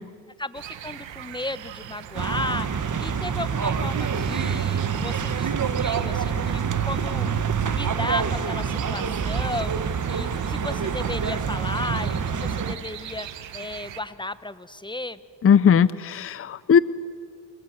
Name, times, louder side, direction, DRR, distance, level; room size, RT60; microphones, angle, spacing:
voice 1, 0.4-15.2, left 2 dB, 10° left, 14 dB, 1.1 m, -34 dB
sound 1, 0.5-14.0, right 11 dB, 80° right, 1.7 m, -41 dB
sound 2, 2.1-12.7, right 6 dB, 45° right, 1.7 m, -26 dB
voice 2, 15.4-16.8, left 7 dB, 30° left, 17 dB, 0.7 m, -18 dB
28.5 x 22.0 x 8.1 m, 2.1 s
cardioid pair, 80°, 44 cm